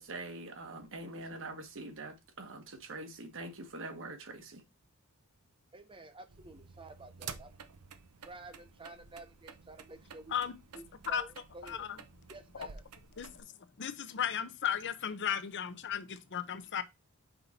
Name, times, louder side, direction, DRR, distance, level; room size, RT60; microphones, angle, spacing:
voice 1, 0.0-4.6, right 2 dB, 60° right, 1.3 m, -44 dB
voice 2, 5.7-7.6 8.2-10.3 10.7-11.9 12.3-12.8, right 2 dB, 25° right, 0.8 m, -51 dB
sound 1, 6.3-13.4, right 6 dB, 90° right, 0.7 m, -51 dB
voice 3, 11.6-12.0 13.2-13.4 13.8-16.8, left 8 dB, 55° left, 0.7 m, -35 dB
5.6 x 4.1 x 4.1 m
head